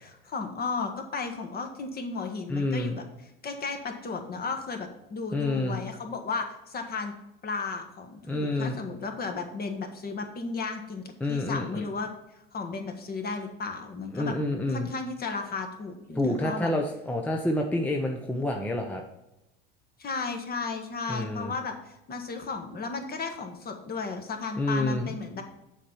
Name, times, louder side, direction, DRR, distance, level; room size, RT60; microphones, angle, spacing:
voice 1, 0.0-3.0 3.4-7.1 7.4-12.1 12.5-14.3 14.7-16.7 20.0-25.4, left 4 dB, 30° left, 4 dB, 1.3 m, -34 dB
voice 2, 2.5-3.0 5.3-5.8 8.3-8.8 11.2-11.9 14.1-14.9 16.1-19.0 21.1-21.5 24.6-25.1, left 2 dB, 5° left, 2 dB, 0.6 m, -28 dB
7.2 x 4.3 x 5.4 m, 0.89 s
supercardioid pair, 100°, 30 cm